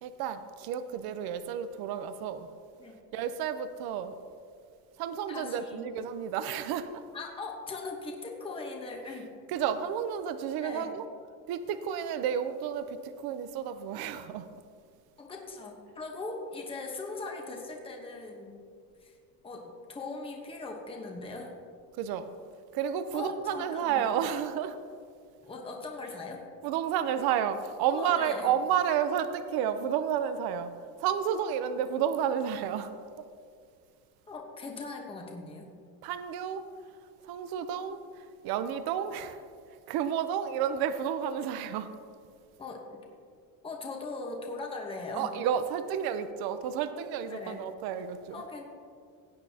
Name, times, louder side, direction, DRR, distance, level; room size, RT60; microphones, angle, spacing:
voice 1, 0.0-2.5 3.1-4.2 5.0-7.0 9.5-11.0 11.5-14.6 22.0-22.3 22.7-24.8 26.6-30.7 31.0-32.9 36.0-36.6 37.2-39.4 39.9-41.9 45.1-48.4, right 8 dB, 65° right, 10 dB, 0.7 m, -31 dB
voice 2, 5.3-5.8 7.1-9.3 10.6-10.9 15.2-18.7 19.0-19.2 19.4-21.5 23.1-24.1 25.4-26.4 27.9-28.5 34.3-35.7 42.6-43.0 43.6-45.3 47.3-47.6 48.3-48.6, left 3 dB, 15° left, 1 dB, 1.1 m, -40 dB
17.0 x 9.0 x 2.8 m, 2.2 s
cardioid pair, 155°, 40 cm